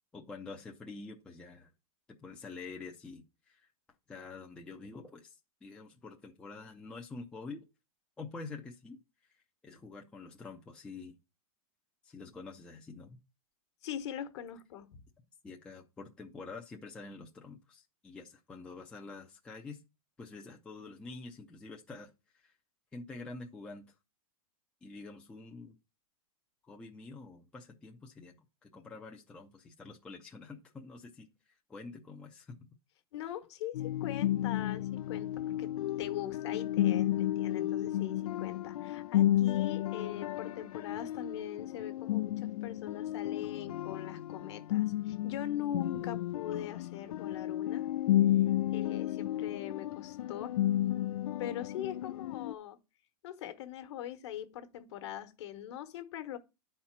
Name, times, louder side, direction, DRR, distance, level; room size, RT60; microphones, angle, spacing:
voice 1, 0.1-1.7 2.1-3.7 4.1-7.6 8.2-9.0 9.6-11.2 12.0-13.2 15.4-19.8 20.2-22.5 22.9-23.9 24.8-25.8 26.6-28.4 28.6-31.3 31.7-32.6, left 3 dB, 5° left, 0.5 m, -47 dB
voice 2, 13.8-15.0 33.1-47.8 48.7-50.5 51.4-52.8 53.2-56.4, left 10 dB, 50° left, 1.2 m, -41 dB
sound 1, 33.7-52.5, left 13 dB, 75° left, 0.4 m, -32 dB
10.5 x 4.3 x 5.8 m
supercardioid pair, 170°, 19 cm